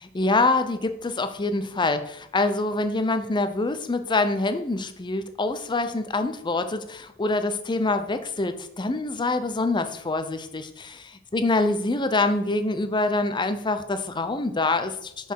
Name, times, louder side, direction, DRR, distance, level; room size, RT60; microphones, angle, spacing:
voice 1, 0.1-15.3, left 2 dB, 20° left, 9 dB, 0.6 m, -25 dB
6.4 x 5.6 x 4.7 m, 0.73 s
head